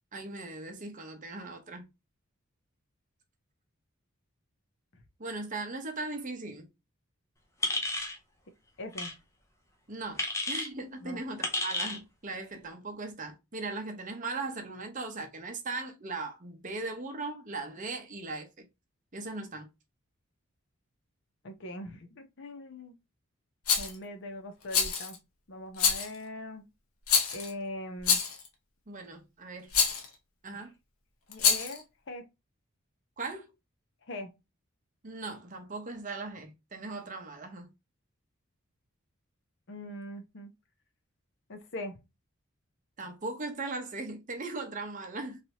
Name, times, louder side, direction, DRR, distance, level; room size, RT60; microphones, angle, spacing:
voice 1, 0.1-1.9 5.2-6.7 9.9-18.7 19.1-19.7 28.9-29.7 30.4-30.7 33.2-33.5 35.0-37.7 43.0-45.4, right 3 dB, 35° right, 0.8 m, -38 dB
sound 1, 7.6-8.2 8.9-9.1 10.2-10.7 11.4-12.0, left 2 dB, 15° left, 0.6 m, -31 dB
voice 2, 8.8-9.1 11.0-11.2 21.4-22.9 23.8-25.2 25.5-26.7 27.3-28.2 30.5-30.6 31.3-32.2 34.1-34.3 39.7-40.5 41.5-42.0, left 1 dB, 60° left, 0.7 m, -41 dB
Rattle, 23.7-23.9 24.7-25.2 25.8-26.2 27.1-27.5 28.0-28.5 29.7-30.1 31.3-31.8, left 6 dB, 85° left, 0.9 m, -26 dB
3.2 x 2.8 x 2.8 m
head